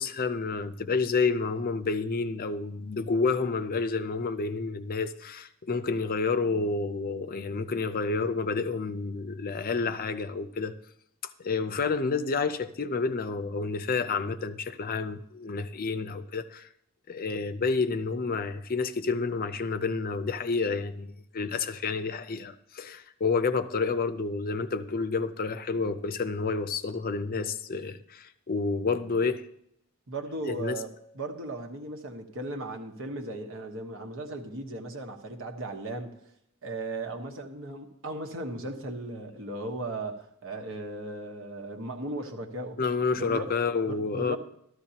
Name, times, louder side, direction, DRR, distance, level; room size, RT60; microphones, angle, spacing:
voice 1, 0.0-10.7 11.4-16.7 17.1-29.4 30.4-30.8 42.8-44.4, left 4 dB, 45° left, 0.6 m, -29 dB
voice 2, 30.1-36.1 36.6-42.8 43.2-43.5 43.8-44.4, right 2 dB, 65° right, 1.3 m, -37 dB
14.0 x 13.0 x 2.9 m
head